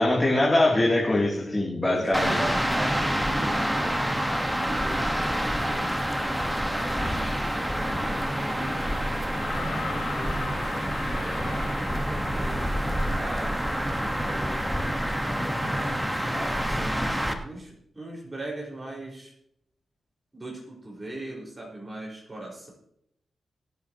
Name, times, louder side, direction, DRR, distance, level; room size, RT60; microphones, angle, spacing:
voice 1, 0.0-2.4, left 1 dB, 20° left, -4 dB, 3.1 m, -22 dB
voice 2, 1.8-9.0 9.5-10.6 11.1-14.7 15.2-17.1 17.4-19.3 20.3-22.7, right 2 dB, 25° right, -3 dB, 5.4 m, -40 dB
sound 1, 2.1-17.3, equal, 5° right, 1.5 m, -27 dB
sound 2, 9.3-12.4 13.6-13.7, left 7 dB, 90° left, 1.1 m, -40 dB
24.5 x 8.4 x 3.1 m, 0.75 s
cardioid pair, 65°, 0 cm